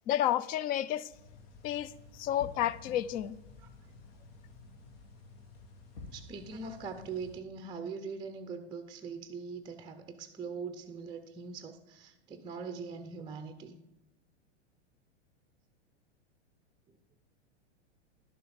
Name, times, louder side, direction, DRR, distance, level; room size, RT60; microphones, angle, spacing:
voice 1, 0.1-1.1 1.6-1.9 2.2-3.4, left 12 dB, 25° left, 0.3 m, -30 dB
sound 1, 1.1-7.4, left 3 dB, 60° left, 1.9 m, -52 dB
voice 2, 6.1-13.8, right 5 dB, 15° right, 0.6 m, -42 dB
11.5 x 6.9 x 5.1 m
hypercardioid pair, 115°, 35 cm